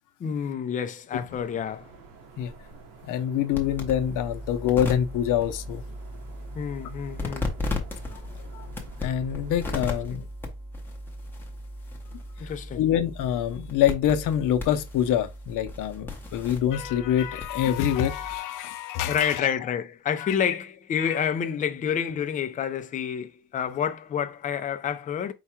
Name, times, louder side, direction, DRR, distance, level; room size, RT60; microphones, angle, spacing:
voice 1, 0.2-1.9 6.5-7.6 9.7-9.8 10.1-10.2 12.4-12.8 19.1-25.3, left 8 dB, 25° left, 0.4 m, -29 dB
sound 1, 1.3-10.1, right 3 dB, 90° right, 1.3 m, -48 dB
voice 2, 3.1-5.8 8.5-8.7 9.0-10.2 12.8-19.5 20.2-20.4 21.0-21.1, left 10 dB, 75° left, 0.7 m, -25 dB
sound 2, 3.5-18.4, left 2 dB, 5° left, 0.8 m, -36 dB
4.8 x 2.2 x 4.3 m
cardioid pair, 170°, 32 cm